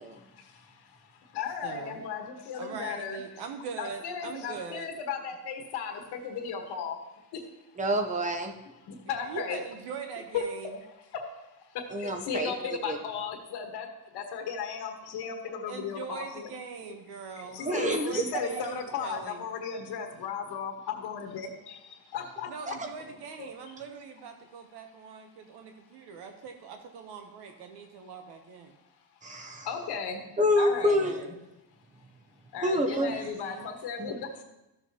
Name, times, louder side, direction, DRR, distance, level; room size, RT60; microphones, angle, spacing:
voice 1, 0.0-3.2 3.8-7.0 7.3-7.4 8.8-9.6 10.3-10.4 11.1-11.3 11.6-16.5 17.5-22.5 23.4-23.5 29.6-30.3 30.6-31.3 32.5-34.4, left 6 dB, 85° left, 2 dB, 1.4 m, -36 dB
voice 2, 1.6-2.0 2.6-4.9 9.1-10.7 15.7-19.5 22.5-28.7 30.8-31.3 32.9-33.7, right 6 dB, 80° right, 5 dB, 0.9 m, -42 dB
voice 3, 7.8-8.5 11.9-12.5 12.8-13.0 17.7-18.2 22.7-22.8 29.2-29.7 30.4-31.2 32.6-33.2 34.0-34.1, equal, 20° right, 4 dB, 0.7 m, -27 dB
13.5 x 6.9 x 2.8 m, 0.94 s
cardioid pair, 160°, 39 cm